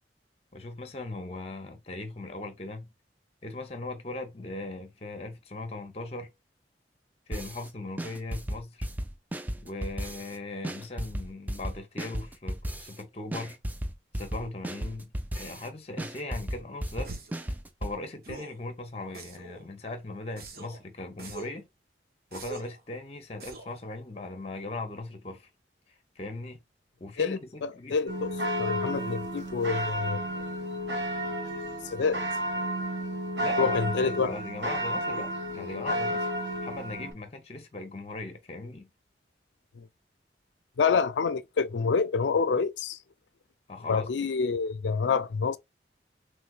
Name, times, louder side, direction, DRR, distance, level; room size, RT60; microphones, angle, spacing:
voice 1, 0.5-2.9 3.4-6.3 7.3-8.9 9.6-13.6 14.1-17.1 17.8-21.7 22.3-25.5 26.2-26.6 27.0-28.0 33.4-36.3 36.6-38.9 43.7-44.3, left 2 dB, 35° left, 0.7 m, -39 dB
sound 1, 7.3-7.7 8.0-10.4 10.6-13.0 13.3-15.7 16.0-18.0, equal, 10° right, 0.3 m, -34 dB
sound 2, 17.0-17.4 18.2-18.6 19.1-19.6 20.4-20.8 21.2-21.6 22.3-22.8 23.4-23.8, right 3 dB, 60° right, 1.0 m, -43 dB
voice 2, 27.2-30.2 31.8-32.2 33.6-34.4 39.8-39.9 40.8-43.0 43.9-45.6, left 5 dB, 85° left, 0.4 m, -27 dB
sound 3, 28.1-37.1, equal, 80° right, 1.1 m, -32 dB
3.2 x 3.2 x 2.3 m
head